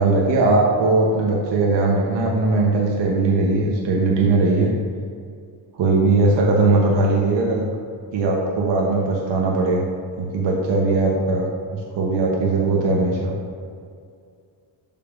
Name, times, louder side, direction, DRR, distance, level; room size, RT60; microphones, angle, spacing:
voice 1, 0.0-4.7 5.8-7.6 8.1-9.9 10.2-13.3, right 3 dB, 60° right, -2 dB, 1.0 m, -19 dB
6.8 x 5.6 x 2.6 m, 2.3 s
cardioid pair, 115°, 48 cm